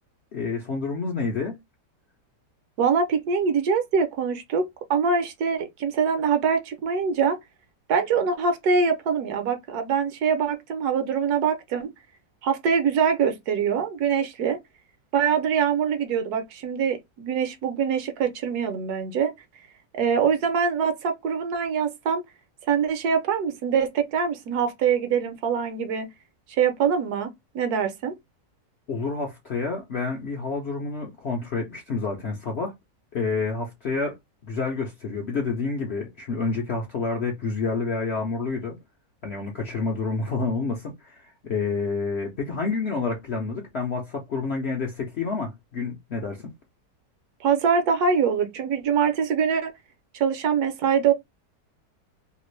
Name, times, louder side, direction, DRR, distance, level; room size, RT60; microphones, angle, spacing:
voice 1, 0.3-1.6 28.9-32.7 33.1-34.2 34.5-38.8 39.2-46.5, left 4 dB, 60° left, 0.7 m, -29 dB
voice 2, 2.8-7.4 7.9-11.9 12.4-14.6 15.1-19.3 19.9-22.2 22.7-26.1 26.5-28.1 47.4-49.7 50.1-51.1, right 6 dB, 70° right, 1.1 m, -24 dB
2.9 x 2.4 x 3.1 m
omnidirectional pair, 1.8 m